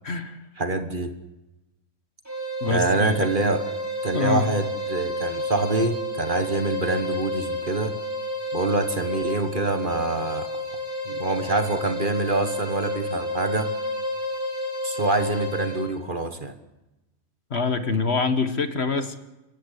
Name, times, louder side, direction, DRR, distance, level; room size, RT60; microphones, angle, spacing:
voice 1, 0.0-0.4 2.6-3.3 4.1-4.5 17.5-19.2, left 4 dB, 50° left, 9 dB, 1.7 m, -25 dB
voice 2, 0.6-1.2 2.7-3.7 4.0-8.0 8.5-10.5 11.0-13.7 14.8-16.5, right 2 dB, 40° right, 8 dB, 1.6 m, -25 dB
sound 1, 2.3-15.9, left 1 dB, 10° right, 4.8 m, -30 dB
29.0 x 15.5 x 8.4 m, 1.0 s
omnidirectional pair, 1.5 m